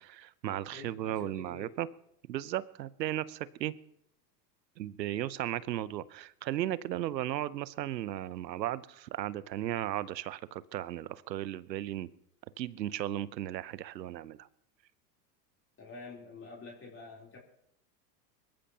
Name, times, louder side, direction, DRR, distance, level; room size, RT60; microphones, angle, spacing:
voice 1, 0.0-1.9 2.3-3.7 4.8-12.1 12.6-14.5, right 13 dB, 85° right, 19 dB, 0.8 m, -35 dB
voice 2, 0.6-1.7 15.8-17.4, left 3 dB, 25° left, -2 dB, 3.7 m, -48 dB
24.0 x 14.0 x 2.9 m, 0.77 s
hypercardioid pair, 90°, 49 cm